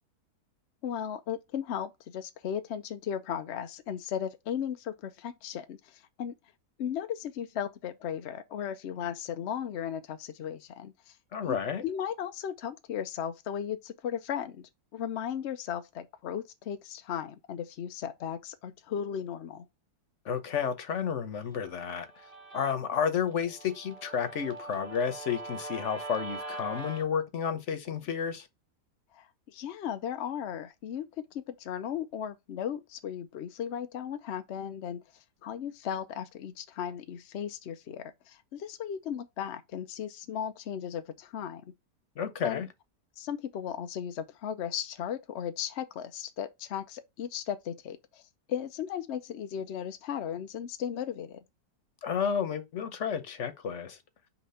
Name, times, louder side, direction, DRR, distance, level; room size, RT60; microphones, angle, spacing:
voice 1, 0.8-6.3 6.8-11.2 11.4-19.7 29.1-35.0 35.4-41.6 42.4-42.6 43.2-48.2 48.5-51.4, left 9 dB, 70° left, 0.6 m, -36 dB
voice 2, 11.3-11.8 20.2-22.1 22.5-28.5 42.2-42.7 52.0-54.0, left 7 dB, 50° left, 1.1 m, -31 dB
Guitar, 21.5-27.0, right 2 dB, 20° right, 1.7 m, -43 dB
5.9 x 3.0 x 5.6 m
omnidirectional pair, 1.8 m